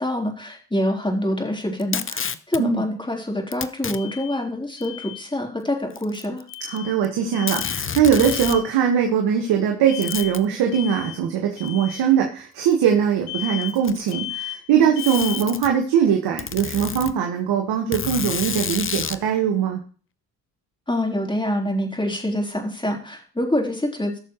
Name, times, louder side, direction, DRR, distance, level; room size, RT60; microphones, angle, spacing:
voice 1, 0.0-6.4 20.9-24.2, left 1 dB, 15° left, 1 dB, 3.8 m, -26 dB
Packing tape duct tape, 1.8-2.6 3.5-4.0 4.8-4.9 5.9-6.8 7.0-7.1 7.5-8.6 10.0-10.5 11.7-11.8 12.7-12.8 13.6-14.2 15.0-15.7 16.4-17.1 17.9-19.2, left 7 dB, 35° left, 0.8 m, -29 dB
Alarm, 3.9-4.4 4.8-5.2 6.5-6.9 7.3-7.8 8.2-8.7 9.9-10.4 10.7-11.2 11.6-12.0 13.3-13.8 14.1-14.6 15.0-15.4, left 14 dB, 70° left, 6.7 m, -34 dB
voice 2, 6.6-19.8, right 8 dB, 80° right, 2 dB, 1.6 m, -21 dB
17.5 x 6.7 x 3.1 m, 0.40 s
supercardioid pair, 55°, 37 cm